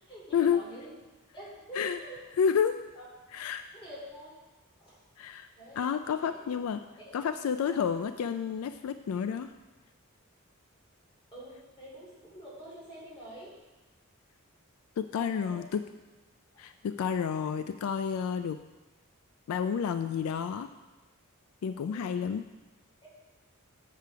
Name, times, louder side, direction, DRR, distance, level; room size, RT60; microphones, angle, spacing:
voice 1, 0.1-0.9 1.3-2.2 2.9-3.0 3.7-4.3 4.8-4.9 5.6-6.4 7.0-7.3 11.3-13.5 15.1-15.6 21.6-22.2, right 1 dB, 25° left, -6 dB, 3.0 m, -47 dB
voice 2, 2.4-2.8 3.3-3.6 5.2-5.5 5.8-6.8 7.1-9.5 15.0-15.8 16.6-18.6 19.5-20.7 21.6-22.5, left 7 dB, 80° left, 10 dB, 0.3 m, -30 dB
6.7 x 6.7 x 4.7 m, 1.1 s
head